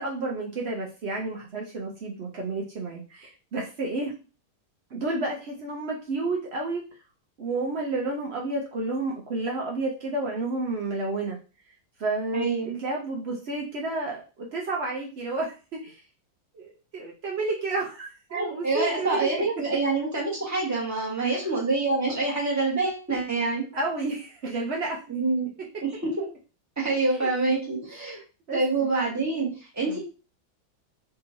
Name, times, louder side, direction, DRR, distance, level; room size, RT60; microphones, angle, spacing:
voice 1, 0.0-4.1 4.9-6.8 7.4-11.4 12.0-16.0 16.5-19.4 21.2-21.4 22.1-22.2 23.7-25.0 27.1-27.6 28.0-28.9 29.9-30.0, right 2 dB, 80° right, -2 dB, 0.5 m, -31 dB
voice 2, 12.3-12.8 18.3-23.6 25.1-25.5 25.8-26.3 26.8-28.2 28.5-30.0, right 3 dB, 10° right, -4 dB, 1.1 m, -26 dB
3.7 x 2.8 x 2.7 m, 0.33 s
omnidirectional pair, 2.0 m